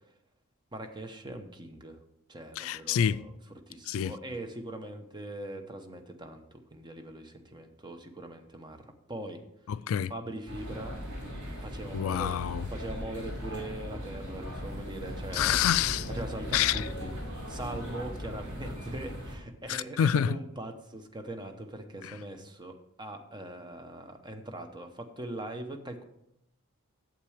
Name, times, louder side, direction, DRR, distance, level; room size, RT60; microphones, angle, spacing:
voice 1, 0.7-2.0 2.3-3.4 3.7-9.4 10.1-11.0 11.6-12.3 12.7-15.6 16.1-26.0, right 1 dB, 20° right, 0.8 m, -41 dB
voice 2, 2.6-3.2 3.9-4.1 9.7-10.1 11.9-12.7 15.3-16.1 16.5-16.9 19.7-20.4, left 9 dB, 65° left, 0.3 m, -27 dB
sound 1, 10.5-19.3, equal, 80° right, 4.2 m, -38 dB
8.8 x 7.5 x 4.9 m
head